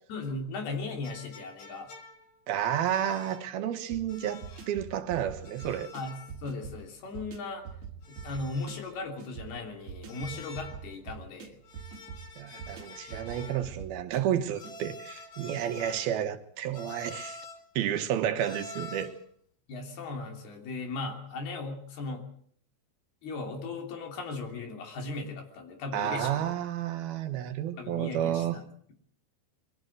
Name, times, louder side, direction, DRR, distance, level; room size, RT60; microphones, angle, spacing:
voice 1, 0.1-1.9 5.9-7.7 8.1-11.6 15.8-15.9 19.7-22.3 23.2-26.4 27.8-28.9, left 3 dB, 70° left, 5.1 m, -37 dB
sound 1, 1.0-2.4 2.9-3.6 4.1-4.8 5.4-6.4 6.7-6.8 8.0-9.0 10.1-10.9 11.6-13.7 14.5-16.2 16.7-17.7 18.4-19.3, left 3 dB, 50° left, 3.2 m, -47 dB
voice 2, 2.5-4.4 4.7-5.9 12.4-17.5 17.8-19.1 25.9-28.6, right 10 dB, 70° right, 2.9 m, -31 dB
sound 2, 3.9-14.8, right 7 dB, 55° right, 2.5 m, -45 dB
22.5 x 15.0 x 7.9 m
omnidirectional pair, 4.7 m